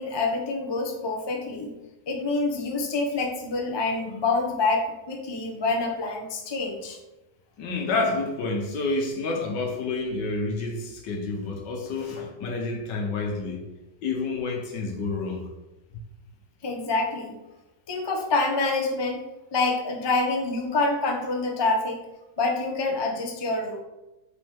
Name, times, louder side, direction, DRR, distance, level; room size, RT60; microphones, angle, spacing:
voice 1, 0.0-1.7 2.1-7.0 16.6-17.3 17.9-19.2 19.5-22.0 22.4-23.8, left 3 dB, 25° left, 0.5 m, -26 dB
voice 2, 7.6-13.7 14.0-15.5, left 3 dB, 70° left, 1.7 m, -29 dB
8.2 x 4.3 x 3.6 m
omnidirectional pair, 2.0 m